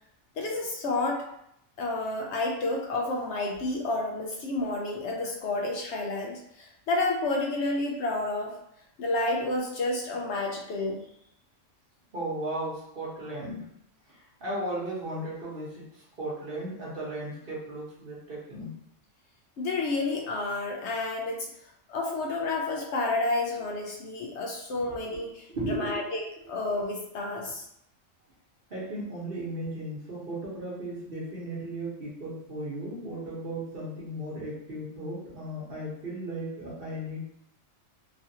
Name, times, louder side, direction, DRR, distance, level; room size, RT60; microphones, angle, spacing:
voice 1, 0.4-1.2 1.8-8.6 9.0-11.0 19.6-21.5 21.9-26.2 26.5-27.7, left 2 dB, 70° left, 0 dB, 0.8 m, -30 dB
voice 2, 12.1-13.7 14.1-18.7 24.8-25.2 25.5-25.9 28.7-37.3, right 1 dB, 50° right, -6 dB, 1.1 m, -36 dB
3.2 x 2.4 x 2.7 m, 0.75 s
omnidirectional pair, 1.3 m